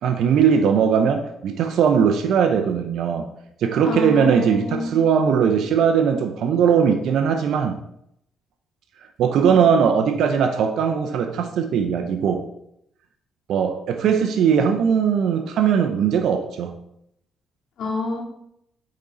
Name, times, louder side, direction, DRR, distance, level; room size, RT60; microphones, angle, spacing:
voice 1, 0.0-3.3 3.6-7.8 9.2-12.4 13.5-16.7, right 7 dB, 75° right, 6 dB, 0.6 m, -19 dB
voice 2, 3.8-5.0 9.3-9.6 17.8-18.2, left 3 dB, 70° left, -3 dB, 2.3 m, -27 dB
8.6 x 3.9 x 4.0 m, 0.76 s
cardioid pair, 90°, 0 cm